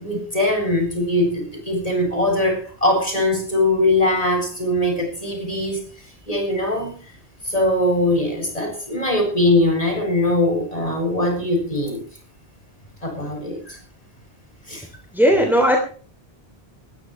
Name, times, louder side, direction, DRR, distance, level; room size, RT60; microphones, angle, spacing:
voice 1, 0.0-5.8 6.3-7.0 7.4-12.0 13.0-13.8 14.7-14.9, left 1 dB, 35° left, 2 dB, 8.3 m, -21 dB
voice 2, 15.1-15.8, equal, ahead, 2 dB, 3.2 m, -16 dB
21.0 x 15.0 x 3.3 m, 0.41 s
omnidirectional pair, 1.1 m